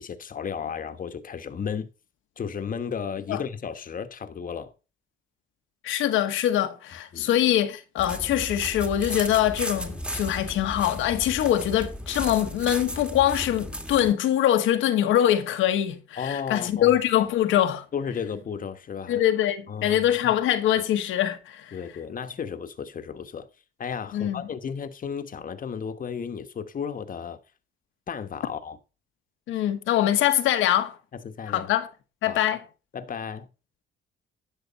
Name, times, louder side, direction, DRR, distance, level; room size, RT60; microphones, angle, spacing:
voice 1, 0.0-1.9 2.4-4.7 7.1-7.3 16.2-17.0 17.9-19.2 19.7-20.4 21.7-23.5 23.8-27.4 28.1-28.8 31.2-31.7 32.3-32.4 32.9-33.5, left 7 dB, 45° left, 1.2 m, -34 dB
voice 2, 5.8-17.8 19.1-21.8 24.1-24.4 29.5-31.0 31.5-31.9 32.2-32.6, left 11 dB, 90° left, 1.3 m, -23 dB
sound 1, 8.0-14.1, equal, 5° right, 1.7 m, -35 dB
11.0 x 6.7 x 4.1 m
cardioid pair, 90°, 20 cm